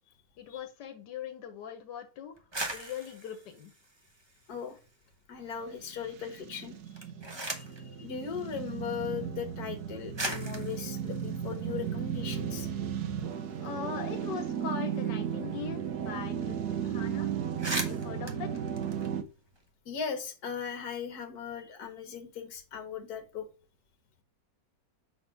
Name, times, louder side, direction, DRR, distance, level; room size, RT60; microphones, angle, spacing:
voice 1, 0.4-3.7 13.6-17.3 17.6-18.6, left 7 dB, 85° left, 6 dB, 1.5 m, -41 dB
sound 1, 2.4-4.9 5.3-6.0 6.8-7.9 8.9-9.0 9.7-9.8 10.1-12.5 12.8-12.9 13.2-16.2 16.5-16.7 17.1-17.2 17.4-19.6, right 2 dB, 20° right, 0.9 m, -40 dB
voice 2, 5.3-6.8 7.6-7.7 8.0-12.7 19.9-23.5, left 7 dB, 65° left, 8 dB, 1.7 m, -38 dB
sound 2, 5.9-19.2, right 8 dB, 70° right, 1.3 m, -35 dB
5.5 x 4.1 x 5.9 m, 0.34 s
omnidirectional pair, 1.8 m